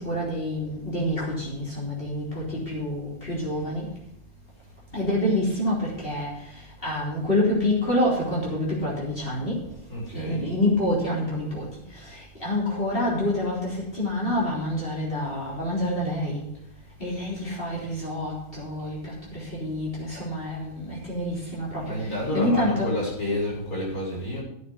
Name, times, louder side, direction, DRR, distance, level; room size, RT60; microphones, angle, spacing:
voice 1, 0.0-3.9 4.9-9.6 10.1-11.7 11.9-16.4 17.0-22.9, left 1 dB, 40° left, -5 dB, 3.9 m, -27 dB
voice 2, 9.9-10.4 21.8-24.4, left 1 dB, 80° left, -5 dB, 5.9 m, -29 dB
9.9 x 6.9 x 7.6 m, 0.77 s
omnidirectional pair, 1.5 m